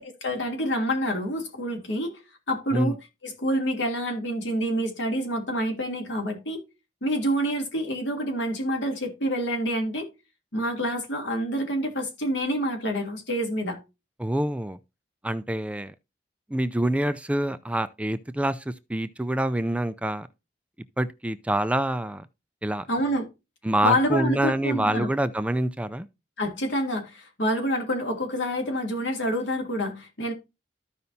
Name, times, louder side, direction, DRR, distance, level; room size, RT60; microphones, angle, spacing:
voice 1, 0.0-2.2 2.5-3.0 3.2-6.6 7.0-10.1 10.5-13.8 22.9-23.3 23.8-25.1 26.4-30.3, equal, 90° left, 2.9 m, -27 dB
voice 2, 14.2-14.8 15.2-15.9 16.5-20.3 21.0-22.3 22.6-22.9 23.6-26.1, right 1 dB, 5° right, 0.5 m, -26 dB
14.0 x 5.4 x 2.8 m
head